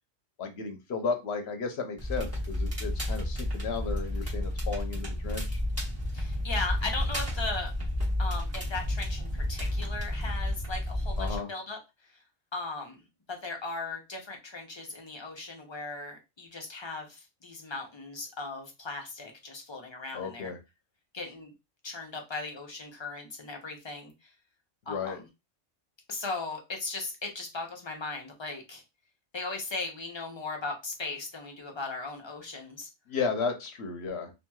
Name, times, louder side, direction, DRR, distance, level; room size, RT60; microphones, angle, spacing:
voice 1, 0.4-5.6 11.2-11.5 20.1-20.6 24.9-25.2 33.1-34.3, left 5 dB, 65° left, 5 dB, 0.9 m, -34 dB
Crackle, 2.0-11.4, left 1 dB, 15° right, 0.9 m, -31 dB
voice 2, 6.1-7.7 8.2-12.2 12.5-20.5 21.1-21.5 21.8-24.3 24.9-25.3 26.1-28.8 29.3-32.9, left 3 dB, 35° left, 2 dB, 0.5 m, -38 dB
2.9 x 2.6 x 2.3 m, 0.24 s
omnidirectional pair, 1.3 m